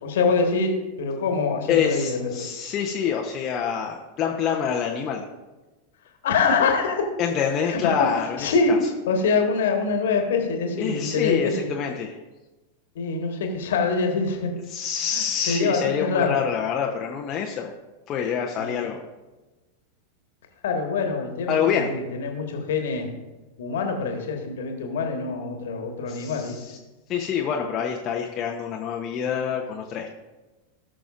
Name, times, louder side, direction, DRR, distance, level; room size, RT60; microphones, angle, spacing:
voice 1, 0.0-2.4 6.2-7.1 7.6-8.1 8.4-8.8 9.1-11.7 12.9-14.5 15.1-16.4 18.6-18.8 20.6-23.1 23.6-26.6, left 4 dB, 60° left, 3 dB, 1.5 m, -25 dB
voice 2, 1.7-5.2 7.2-8.5 10.8-12.2 14.7-17.7 18.1-19.0 21.5-21.9 26.1-26.8 27.1-30.2, left 7 dB, 35° left, 0 dB, 0.8 m, -26 dB
18.5 x 6.2 x 2.5 m, 1.1 s
figure-of-eight pair, 90°, 0 cm